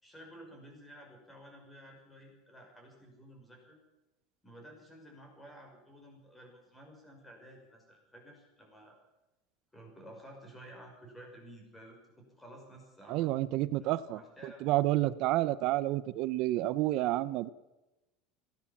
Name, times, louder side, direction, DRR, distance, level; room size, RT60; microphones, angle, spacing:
voice 1, 0.0-3.8 4.4-9.0 9.7-13.5 13.8-14.7, right 1 dB, 10° left, 1 dB, 5.7 m, -53 dB
voice 2, 13.1-14.2 14.6-17.5, right 16 dB, 50° right, 16 dB, 0.7 m, -29 dB
21.5 x 16.5 x 7.3 m, 1.0 s
supercardioid pair, 155°, 0 cm